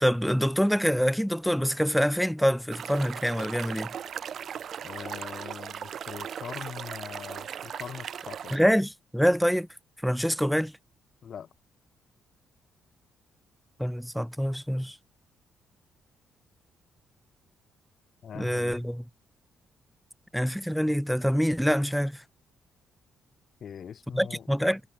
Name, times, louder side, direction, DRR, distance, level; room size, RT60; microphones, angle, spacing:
voice 1, 0.0-3.9 8.5-9.7 10.0-10.7 13.8-15.0 18.3-19.0 20.3-22.2 24.1-24.8, equal, ahead, 0.3 m, -25 dB
sound 1, 2.7-8.6, right 8 dB, 60° right, 0.6 m, -38 dB
voice 2, 4.8-8.6 11.2-11.5 18.2-18.8 23.6-24.5, left 8 dB, 55° left, 4.1 m, -42 dB
cardioid pair, 90°, 0 cm